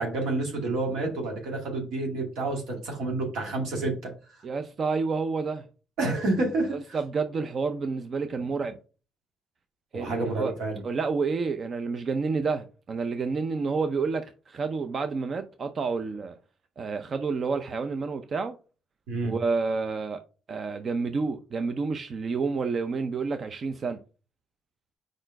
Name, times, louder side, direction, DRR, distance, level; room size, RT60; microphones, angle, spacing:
voice 1, 0.0-4.1 6.0-6.8 9.9-10.8 19.1-19.3, right 2 dB, 85° right, 2.2 m, -29 dB
voice 2, 4.4-5.6 6.0-6.1 6.9-8.8 9.9-10.5 10.8-16.4 16.8-18.6 19.2-20.2 20.5-24.0, right 4 dB, 45° right, 0.5 m, -29 dB
4.8 x 4.4 x 4.5 m
cardioid pair, 90°, 0 cm